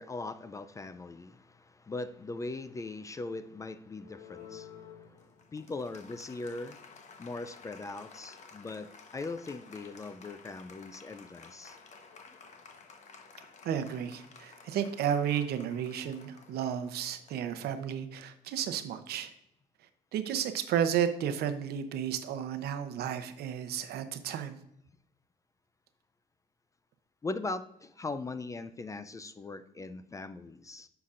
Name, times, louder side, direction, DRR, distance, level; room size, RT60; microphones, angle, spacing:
voice 1, 0.0-6.8 7.2-11.8 27.2-30.9, left 3 dB, 20° left, 12 dB, 0.4 m, -40 dB
Applause, 4.0-18.0, left 5 dB, 45° left, 1.1 m, -53 dB
voice 2, 13.6-19.3 20.1-24.6, right 9 dB, 70° right, 10 dB, 0.7 m, -32 dB
9.5 x 5.8 x 2.5 m, 0.77 s
cardioid pair, 110°, 17 cm